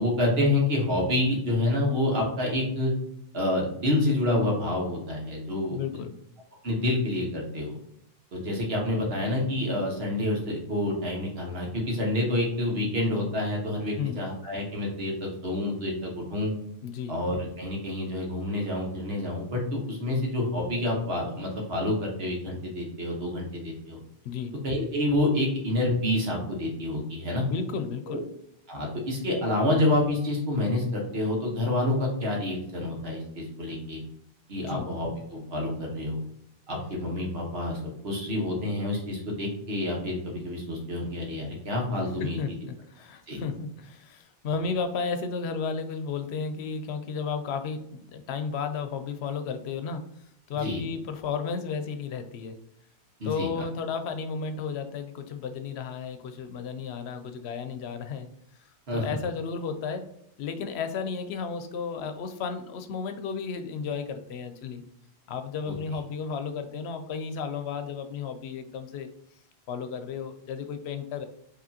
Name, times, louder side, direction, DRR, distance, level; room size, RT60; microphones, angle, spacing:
voice 1, 0.0-2.9 3.3-5.8 6.6-7.8 8.3-16.5 17.1-24.0 24.6-27.5 28.1-28.2 28.7-34.0 34.5-36.2 36.7-42.4 43.3-43.4 50.6-50.8 53.2-53.6 58.9-59.2 65.7-65.8, left 1 dB, 70° right, -1 dB, 1.4 m, -28 dB
voice 2, 5.7-6.1 14.0-14.2 16.8-17.1 24.2-24.6 27.5-28.2 34.6-34.9 42.2-50.1 50.5-52.6 53.2-58.3 58.9-60.0 60.4-64.8 65.3-69.1 69.7-71.3, left 5 dB, 85° left, 8 dB, 0.8 m, -33 dB
5.0 x 3.0 x 2.8 m, 0.74 s
omnidirectional pair, 1.1 m